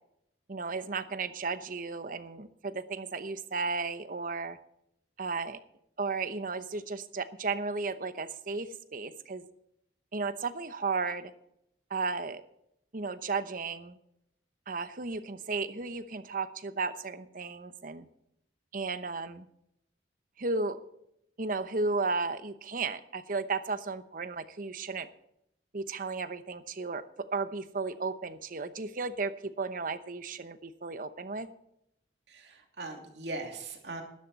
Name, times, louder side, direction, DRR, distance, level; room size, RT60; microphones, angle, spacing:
voice 1, 0.5-4.6 5.2-5.6 6.0-9.4 10.1-11.3 11.9-12.4 12.9-14.0 14.7-18.1 18.7-19.5 20.4-20.8 21.4-25.1 25.7-27.0 27.3-31.5, right 4 dB, 50° right, 11 dB, 0.9 m, -34 dB
voice 2, 32.3-34.0, right 2 dB, 70° right, 2 dB, 2.8 m, -40 dB
13.0 x 11.5 x 4.2 m, 0.78 s
head